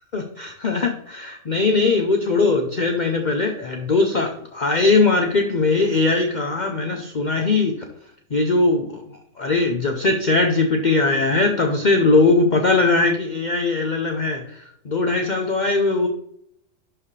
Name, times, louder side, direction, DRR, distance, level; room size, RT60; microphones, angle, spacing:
voice 1, 0.1-7.7 8.3-9.0 9.4-16.1, left 3 dB, 40° left, 4 dB, 0.8 m, -20 dB
11.5 x 4.8 x 3.2 m, 0.71 s
omnidirectional pair, 1.4 m